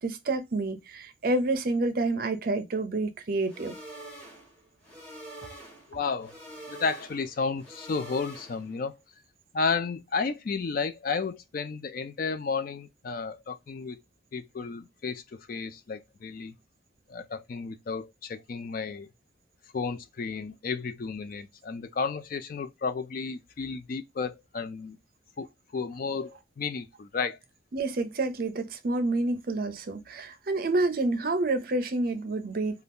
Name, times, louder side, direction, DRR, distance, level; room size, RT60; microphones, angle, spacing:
voice 1, 0.0-3.7 27.7-32.8, right 2 dB, 45° right, 0.5 m, -28 dB
sound 1, 3.4-8.8, right 1 dB, 5° left, 1.1 m, -46 dB
voice 2, 5.9-6.4 6.7-8.9 9.5-14.0 14.3-16.5 17.1-19.1 19.7-25.0 25.4-25.5 25.7-27.4, left 5 dB, 45° left, 0.4 m, -32 dB
2.6 x 2.3 x 3.4 m
head